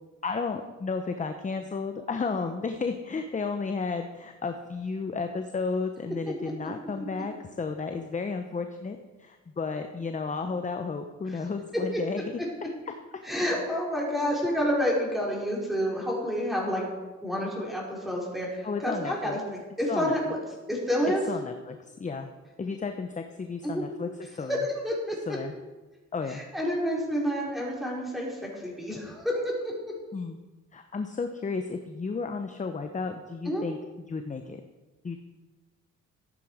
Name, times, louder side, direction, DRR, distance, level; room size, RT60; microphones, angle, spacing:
voice 1, 0.2-12.2 12.9-13.0 14.1-14.3 18.6-19.4 19.9-20.3 21.3-22.3 22.6-24.6 25.3-25.5 26.1-26.4 30.1-30.4 30.7-33.8 34.1-34.6 35.0-35.2, left 4 dB, 25° left, 6 dB, 0.9 m, -33 dB
voice 2, 13.2-16.9 17.2-19.4 19.8-20.2 20.7-21.2 23.6-23.8 24.5-24.6 24.8-25.1 26.3-29.4 33.5-33.6, equal, ahead, -4 dB, 5.1 m, -29 dB
14.0 x 9.1 x 5.1 m, 1.2 s
cardioid pair, 90°, 30 cm